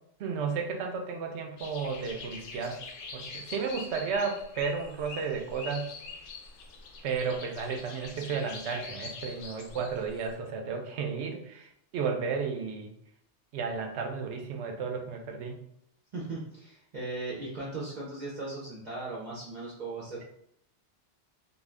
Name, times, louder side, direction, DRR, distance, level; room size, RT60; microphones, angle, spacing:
voice 1, 0.2-2.8 3.1-5.9 7.0-11.7 11.9-12.9 13.5-15.6, right 5 dB, 80° right, 3 dB, 0.9 m, -33 dB
sound 1, 1.6-10.3, left 4 dB, 90° left, 0.9 m, -44 dB
voice 2, 16.1-20.2, right 2 dB, 45° right, -6 dB, 0.7 m, -38 dB
2.5 x 2.4 x 3.3 m, 0.70 s
omnidirectional pair, 1.1 m